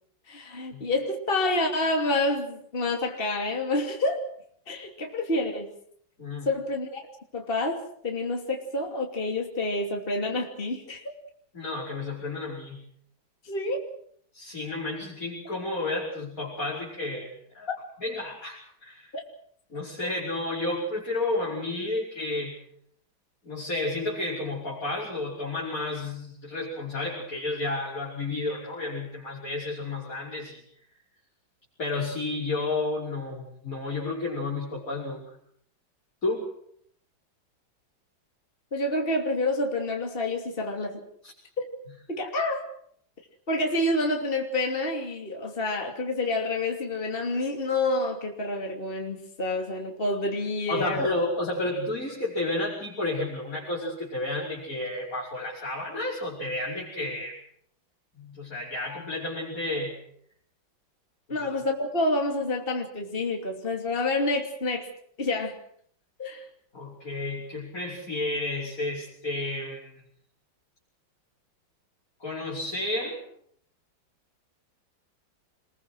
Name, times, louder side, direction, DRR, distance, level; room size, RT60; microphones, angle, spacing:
voice 1, 0.3-4.2 4.7-5.7 6.4-7.1 7.3-7.8 8.0-11.1 13.4-13.9 17.7-17.8 19.1-19.2 20.0-20.1 38.7-41.0 41.6-41.7 42.1-42.7 43.5-51.0 61.3-64.9 65.2-65.6 66.2-66.4, left 2 dB, 25° left, 2 dB, 3.1 m, -28 dB
voice 2, 11.5-12.8 14.3-17.7 18.0-19.1 19.7-22.6 23.4-30.6 31.8-35.3 36.2-36.5 41.2-41.3 50.7-57.4 58.2-60.0 61.3-61.5 66.7-69.9 72.2-73.2, left 2 dB, 40° left, -4 dB, 6.0 m, -31 dB
27.0 x 22.0 x 6.3 m, 0.63 s
omnidirectional pair, 2.2 m